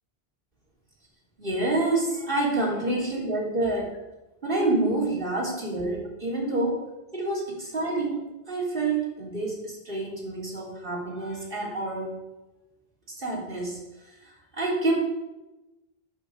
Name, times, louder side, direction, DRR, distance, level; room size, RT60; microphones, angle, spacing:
voice 1, 1.4-3.9 4.4-6.8 7.1-12.2 13.2-13.8 14.5-15.0, right 2 dB, 55° right, -4 dB, 3.7 m, -27 dB
11.5 x 5.9 x 6.8 m, 1.0 s
omnidirectional pair, 1.0 m